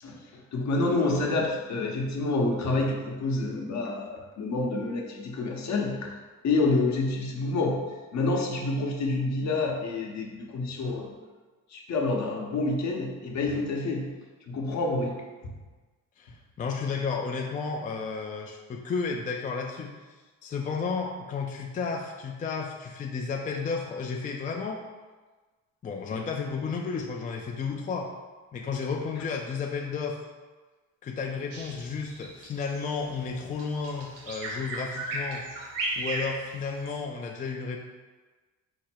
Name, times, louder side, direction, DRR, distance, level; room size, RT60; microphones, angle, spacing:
voice 1, 0.0-6.1 6.4-7.8 8.1-11.1 11.7-14.1 14.5-15.5, left 2 dB, 55° left, 0 dB, 0.9 m, -28 dB
voice 2, 16.2-19.9 20.4-24.8 25.8-28.1 28.5-30.2 31.0-35.4 36.0-37.8, left 5 dB, 25° left, 1 dB, 0.4 m, -32 dB
Bird vocalization bird call bird song, 31.5-37.0, right 2 dB, 85° right, 1.0 m, -35 dB
4.9 x 2.2 x 4.4 m, 1.3 s
cardioid pair, 95°, 33 cm